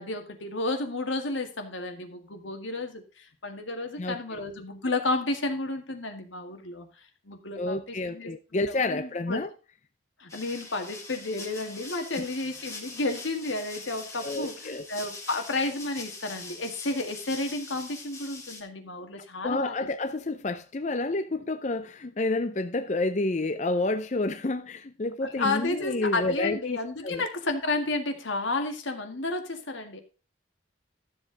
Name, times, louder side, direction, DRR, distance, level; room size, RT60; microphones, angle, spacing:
voice 1, 0.0-8.3 8.7-9.4 10.2-19.7 25.4-30.0, left 2 dB, 90° left, 1.9 m, -32 dB
voice 2, 4.0-4.4 7.6-9.5 14.2-14.9 19.2-26.8 27.0-27.2, left 2 dB, 40° left, 0.5 m, -29 dB
sound 1, 10.3-18.6, left 3 dB, 15° left, 1.8 m, -43 dB
12.5 x 7.4 x 3.9 m
head